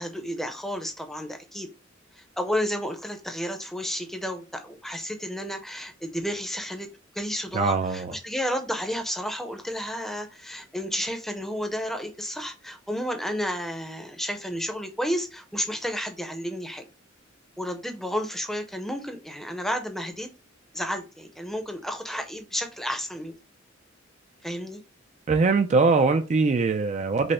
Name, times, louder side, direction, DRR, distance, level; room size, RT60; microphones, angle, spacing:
voice 1, 0.0-1.7 2.2-6.9 7.1-16.8 17.6-20.3 20.7-23.3 24.4-24.8, equal, ahead, 0.6 m, -31 dB
voice 2, 7.5-8.2 25.3-27.3, right 4 dB, 35° right, 0.3 m, -22 dB
5.3 x 2.1 x 4.1 m
head